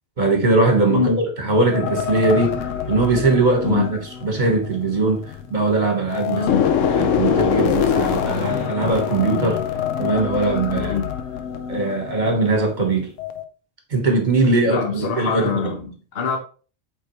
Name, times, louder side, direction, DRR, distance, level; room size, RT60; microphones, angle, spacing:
voice 1, 0.2-2.6 2.9-6.4 6.8-9.6 10.0-11.0 11.7-13.1 13.9-15.7, right 3 dB, 40° right, 1.5 m, -20 dB
voice 2, 0.9-1.2 3.6-3.9 6.3-6.7 10.8-11.1 14.7-16.4, left 5 dB, 55° left, 1.1 m, -24 dB
sound 1, 1.7-5.7 6.1-12.8 13.2-13.4, left 8 dB, 90° left, 1.1 m, -24 dB
8.2 x 3.8 x 3.1 m
omnidirectional pair, 1.3 m